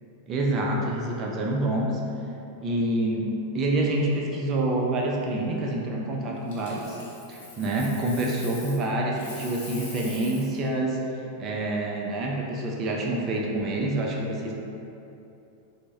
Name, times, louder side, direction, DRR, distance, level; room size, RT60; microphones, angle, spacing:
voice 1, 0.3-2.0 2.6-7.0 7.3-14.5, right 1 dB, 30° right, -2 dB, 0.4 m, -27 dB
Coin (dropping), 6.5-8.9 9.1-10.6 13.4-13.6, left 3 dB, 55° left, 0.8 m, -43 dB
4.2 x 2.1 x 3.3 m, 2.8 s
figure-of-eight pair, 90°, 0 cm